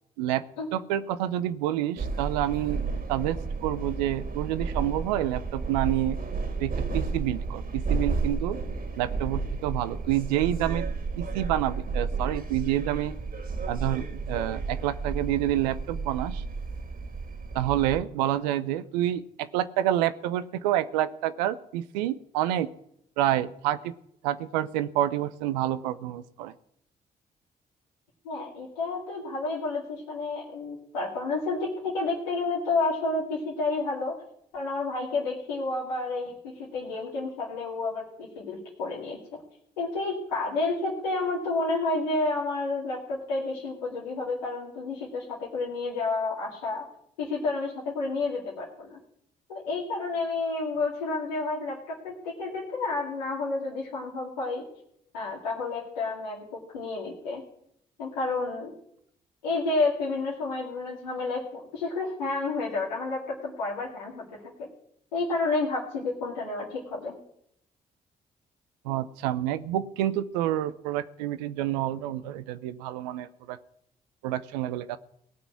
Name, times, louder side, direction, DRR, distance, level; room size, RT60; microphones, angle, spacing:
voice 1, 0.7-6.2 6.6-8.6 9.0-10.9 11.2-13.2 13.7-16.4 17.5-22.7 23.2-23.9 24.2-26.5 68.8-73.6 74.2-75.0, right 12 dB, 85° right, 14 dB, 0.7 m, -28 dB
sound 1, 2.0-18.0, right 4 dB, 45° right, 2.5 m, -32 dB
voice 2, 28.2-34.1 34.5-39.4 39.8-46.9 47.2-49.0 49.5-54.6 55.1-57.4 58.0-58.7 59.4-64.2 64.6-64.7 65.1-67.2, left 3 dB, 90° left, -5 dB, 2.3 m, -30 dB
17.5 x 6.1 x 9.5 m, 0.73 s
hypercardioid pair, 40°, 21 cm